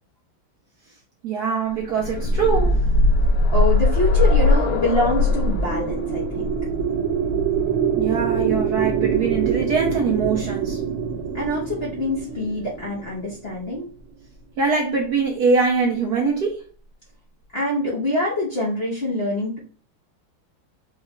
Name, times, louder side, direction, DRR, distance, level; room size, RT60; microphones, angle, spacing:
voice 1, 1.2-2.8 8.0-10.8 14.6-16.6, right 5 dB, 65° right, 1.0 m, -22 dB
sound 1, 1.8-9.6 10.7-10.8 11.2-11.3, left 2 dB, 80° left, 1.5 m, -21 dB
voice 2, 3.5-6.5 11.3-13.9 17.5-19.6, left 1 dB, 45° left, 0.9 m, -25 dB
sound 2, 5.2-13.6, right 7 dB, 85° right, 1.5 m, -25 dB
4.7 x 2.3 x 3.1 m
omnidirectional pair, 2.3 m